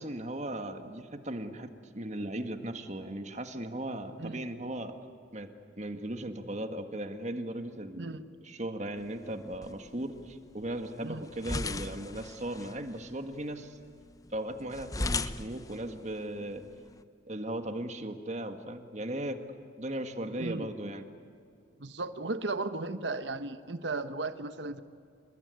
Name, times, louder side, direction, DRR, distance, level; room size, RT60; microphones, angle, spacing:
voice 1, 0.0-4.9 5.3-5.5 5.8-8.1 8.4-13.8 14.3-16.6 17.3-19.4 19.8-21.0, right 1 dB, 35° right, 7 dB, 1.7 m, -37 dB
sound 1, 9.0-17.0, left 3 dB, 20° left, 0.6 m, -40 dB
voice 2, 21.8-24.8, right 3 dB, 60° right, 11 dB, 1.2 m, -35 dB
28.0 x 21.0 x 9.7 m, 2.4 s
head